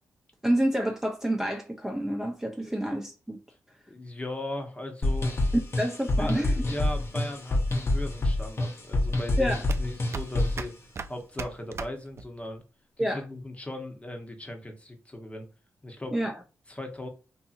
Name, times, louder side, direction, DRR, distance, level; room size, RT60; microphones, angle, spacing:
voice 1, 0.4-3.4 5.5-6.5 9.4-9.6 13.0-13.2 16.1-16.3, equal, 10° right, 0.7 m, -28 dB
voice 2, 3.9-5.4 6.2-10.7 11.1-12.6 13.0-15.5 15.8-16.2 16.7-17.1, left 1 dB, 20° left, 1.0 m, -38 dB
sound 1, 5.0-10.7, left 2 dB, 50° left, 0.9 m, -27 dB
sound 2, 7.0-12.6, right 4 dB, 50° right, 0.4 m, -40 dB
2.7 x 2.6 x 2.4 m
supercardioid pair, 45°, 6 cm